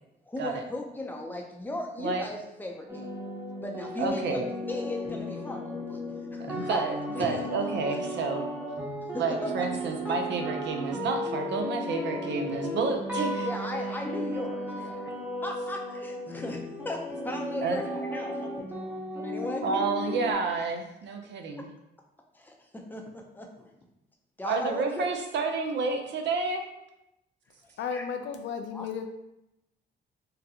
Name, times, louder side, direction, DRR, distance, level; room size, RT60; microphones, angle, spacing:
voice 1, 0.3-3.1 3.6-4.4 4.7-6.0 6.3-6.8 7.2-7.4 9.1-9.7 13.4-15.0 15.4-19.7 22.3-23.7 24.4-25.1 27.9-28.1 28.7-28.9, left 1 dB, 10° left, 1 dB, 0.6 m, -37 dB
sound 1, 2.9-20.3, equal, 10° right, 0.9 m, -35 dB
voice 2, 4.0-4.5 6.4-8.4 9.1-13.5 17.6-17.8 19.6-21.7 24.4-26.6, right 4 dB, 65° right, 4 dB, 0.5 m, -30 dB
voice 3, 27.8-29.1, left 6 dB, 70° left, 6 dB, 0.4 m, -34 dB
3.8 x 2.2 x 2.8 m, 0.87 s
cardioid pair, 90°, 20 cm